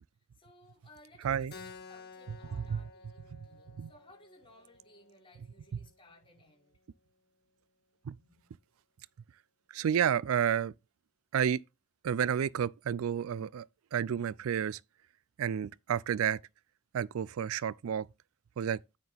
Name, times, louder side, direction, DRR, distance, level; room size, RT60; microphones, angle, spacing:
voice 1, 0.4-6.7 8.1-8.4, left 2 dB, 25° left, 5.0 m, -60 dB
Keyboard (musical), 1.5-6.6, left 4 dB, 55° left, 1.8 m, -53 dB
voice 2, 9.7-10.7 11.3-11.6 12.0-13.7 13.9-14.8 15.4-16.4 16.9-18.1 18.6-18.8, right 8 dB, 85° right, 0.4 m, -30 dB
9.5 x 5.8 x 3.4 m
head